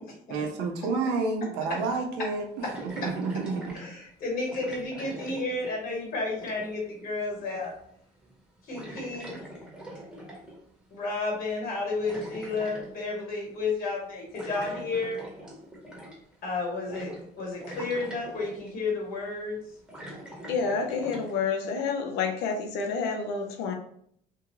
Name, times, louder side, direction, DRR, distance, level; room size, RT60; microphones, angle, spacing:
voice 1, 0.3-2.4 2.8-3.8, right 4 dB, 85° right, 0.7 m, -29 dB
sound 1, 2.6-3.9 4.5-6.0 6.3-6.9 7.5-7.9 8.2-8.4 8.7-10.6 11.7-12.9 14.3-16.3 16.9-17.3 17.6-18.7 19.5-21.3, right 1 dB, 5° right, 0.9 m, -43 dB
voice 2, 3.7-7.7 8.7-9.4 10.9-15.2 16.4-19.6, left 3 dB, 60° left, 1.4 m, -32 dB
voice 3, 20.5-23.7, left 5 dB, 90° left, 0.6 m, -29 dB
2.8 x 2.4 x 3.0 m
cardioid pair, 110°, 17 cm